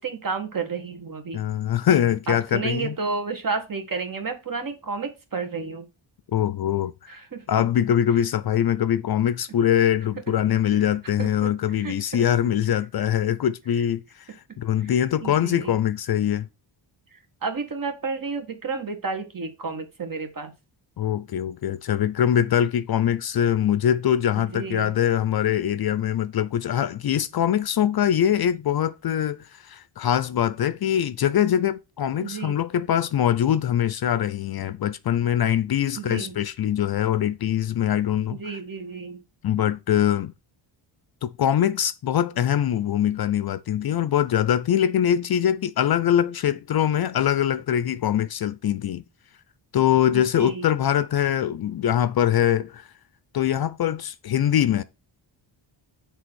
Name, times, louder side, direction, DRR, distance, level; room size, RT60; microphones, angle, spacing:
voice 1, 0.0-1.4 2.3-5.9 7.1-7.4 11.2-12.3 14.8-14.9 15.2-15.7 17.1-20.5 24.4-25.0 32.2-32.6 36.0-36.3 38.4-39.2 50.3-50.7, right 4 dB, 40° right, 1.7 m, -31 dB
voice 2, 1.3-3.0 6.3-7.2 7.5-14.3 14.6-16.5 21.0-38.6 39.4-40.3 41.2-49.0 49.7-52.9 53.3-54.8, left 10 dB, 50° left, 0.5 m, -23 dB
7.7 x 3.4 x 6.2 m
cardioid pair, 115°, 49 cm